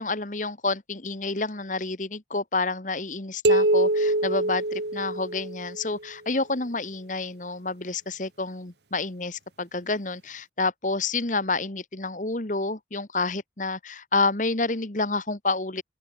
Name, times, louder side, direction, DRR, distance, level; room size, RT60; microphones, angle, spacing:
voice 1, 0.0-15.8, left 3 dB, 45° left, 1.7 m, -29 dB
sound 1, 3.4-5.9, right 1 dB, 70° right, 3.5 m, -24 dB
open air
head